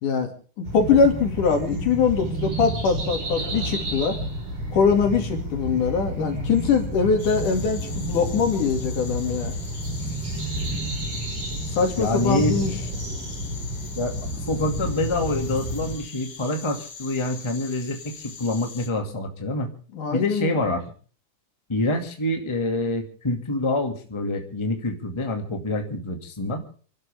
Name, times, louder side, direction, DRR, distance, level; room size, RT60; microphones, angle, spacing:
voice 1, 0.0-4.2 4.7-9.5 11.7-12.7 19.9-20.6, left 5 dB, 75° left, 4 dB, 4.0 m, -22 dB
sound 1, 0.6-16.0, right 1 dB, 70° right, 6.6 m, -30 dB
sound 2, 7.2-18.9, left 5 dB, 50° left, 3.8 m, -42 dB
voice 2, 12.0-12.5 14.0-19.7 20.1-20.8 21.7-26.6, left 2 dB, 10° left, 3 dB, 1.6 m, -26 dB
29.0 x 12.0 x 3.5 m, 0.41 s
omnidirectional pair, 3.7 m